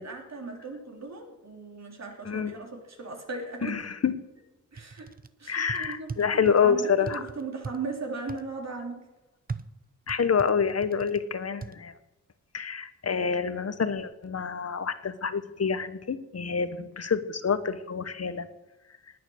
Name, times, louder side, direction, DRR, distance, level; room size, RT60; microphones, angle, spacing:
voice 1, 0.0-3.8 4.7-5.1 5.4-9.1 16.7-16.9, right 3 dB, 55° right, 1 dB, 3.6 m, -38 dB
voice 2, 3.6-4.1 5.5-7.2 10.1-11.9 12.5-18.5, left 6 dB, 50° left, 11 dB, 1.3 m, -27 dB
sound 1, 4.7-5.3 5.7-6.6 7.1-7.8 8.3-8.4 9.5-11.2 11.6-11.7, right 4 dB, 25° right, 0.7 m, -38 dB
19.0 x 9.5 x 6.5 m, 1.0 s
cardioid pair, 80°, 32 cm